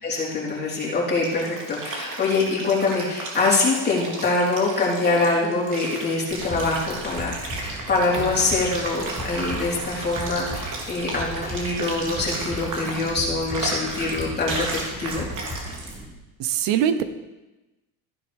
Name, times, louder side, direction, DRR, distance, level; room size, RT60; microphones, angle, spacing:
voice 1, 0.0-15.2, left 3 dB, 20° left, -5 dB, 4.1 m, -24 dB
sound 1, 0.9-16.0, right 2 dB, 40° right, 3.5 m, -34 dB
sound 2, 6.3-16.1, equal, 20° right, 2.1 m, -36 dB
voice 2, 16.4-17.0, right 9 dB, 70° right, 10 dB, 1.1 m, -22 dB
15.0 x 10.5 x 3.6 m, 1.1 s
cardioid pair, 135°, 44 cm